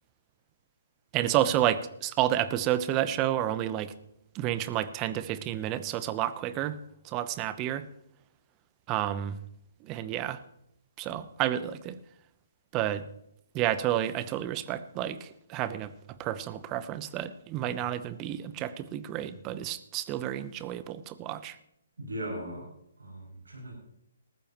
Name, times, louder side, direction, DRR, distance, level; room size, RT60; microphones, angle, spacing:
voice 1, 1.1-3.9 4.3-6.8 7.0-7.8 8.9-9.4 9.8-10.4 11.0-12.0 12.7-13.1 13.5-15.9 16.2-21.6, right 12 dB, 25° right, 14 dB, 0.9 m, -30 dB
voice 2, 22.0-22.6 23.0-23.7, right 1 dB, 80° right, -2 dB, 6.5 m, -38 dB
19.5 x 14.5 x 3.1 m, 0.78 s
figure-of-eight pair, 135°, 0 cm